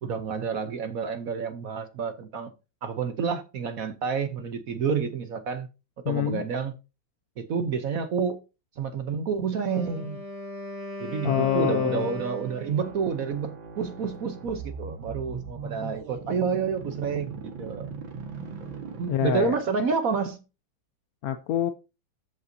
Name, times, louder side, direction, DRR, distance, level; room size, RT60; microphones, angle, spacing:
voice 1, 0.0-2.5 2.8-5.7 6.1-6.7 7.4-8.4 8.8-10.2 11.0-17.9 19.0-20.4, right 6 dB, 60° right, 1.1 m, -29 dB
voice 2, 6.0-6.4 11.2-12.1 19.1-19.6 21.2-21.7, left 10 dB, 70° left, 0.9 m, -25 dB
Wind instrument woodwind instrument, 9.5-13.0, left 1 dB, 35° right, 2.3 m, -38 dB
sound 1, 12.7-19.6, right 5 dB, 85° right, 2.3 m, -39 dB
14.0 x 5.4 x 2.7 m
omnidirectional pair, 2.1 m